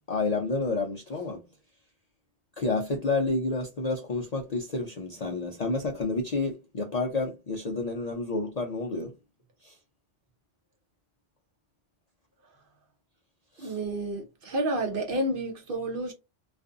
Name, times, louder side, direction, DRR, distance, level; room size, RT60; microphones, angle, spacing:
voice 1, 0.1-1.4 2.6-9.1 9.6-9.8 13.6-13.8, left 3 dB, 50° left, 0.5 m, -30 dB
voice 2, 13.6-16.1, right 1 dB, 55° right, 0.7 m, -30 dB
2.5 x 2.4 x 2.4 m
omnidirectional pair, 1.2 m